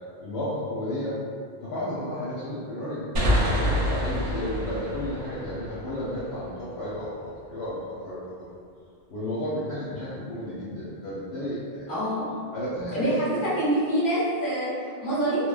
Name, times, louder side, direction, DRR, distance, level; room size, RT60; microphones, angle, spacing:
voice 1, 0.2-1.2 1.6-8.5 9.1-11.9 12.5-13.1, left 1 dB, 80° left, -10 dB, 0.9 m, -33 dB
sound 1, 3.2-6.6, equal, 65° right, 0.7 m, -27 dB
voice 2, 11.9-12.3 12.9-15.5, right 1 dB, 55° left, -11 dB, 1.2 m, -26 dB
2.8 x 2.0 x 2.2 m, 2.3 s
omnidirectional pair, 1.1 m